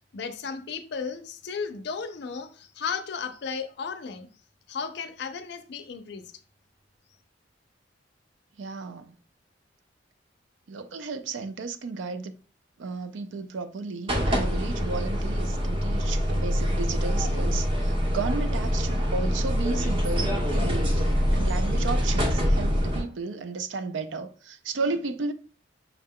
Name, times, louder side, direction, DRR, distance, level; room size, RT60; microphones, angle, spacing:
voice 1, 0.1-4.3 4.7-6.3, left 5 dB, 65° left, 0.5 m, -34 dB
voice 2, 8.6-9.1 10.7-12.3 12.8-21.0 21.3-25.3, right 4 dB, 85° right, 0.4 m, -33 dB
sound 1, 14.1-23.0, equal, 30° right, 0.9 m, -25 dB
5.8 x 2.2 x 3.6 m
head